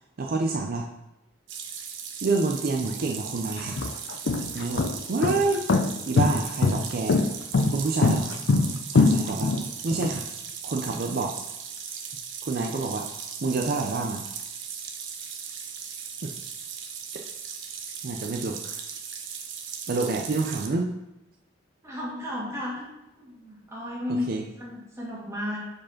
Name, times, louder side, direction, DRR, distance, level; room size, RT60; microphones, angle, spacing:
voice 1, 0.2-0.9 2.2-3.8 4.5-5.6 6.1-7.2 7.7-8.3 8.9-9.6 9.8-10.2 10.6-11.4 11.9-13.1 13.4-14.2 16.2-16.4 18.0-18.8 19.9-20.9 24.1-24.4, right 3 dB, 55° right, 2 dB, 0.5 m, -28 dB
sound 1, 1.5-20.7, right 7 dB, 80° right, 0.9 m, -38 dB
sound 2, 2.8-2.9 3.6-10.1, left 3 dB, 65° left, 0.5 m, -22 dB
voice 2, 21.8-22.9 23.1-24.3 24.6-25.7, left 1 dB, 15° right, -5 dB, 1.9 m, -33 dB
4.9 x 4.7 x 5.8 m, 0.91 s
head